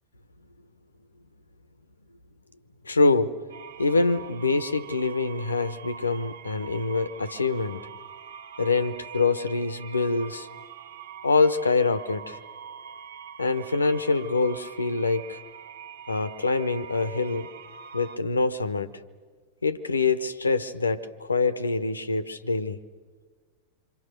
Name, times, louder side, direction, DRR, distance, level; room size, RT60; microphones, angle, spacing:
voice 1, 2.8-3.3 3.8-7.9 8.6-10.5 11.2-12.4 13.4-15.4 16.1-17.5 17.9-18.9 19.6-22.8, left 3 dB, 80° left, 14 dB, 1.1 m, -25 dB
sound 1, 3.5-18.2, right 7 dB, 65° right, 1.1 m, -44 dB
28.0 x 25.5 x 6.7 m, 1.6 s
figure-of-eight pair, 90°, 0 cm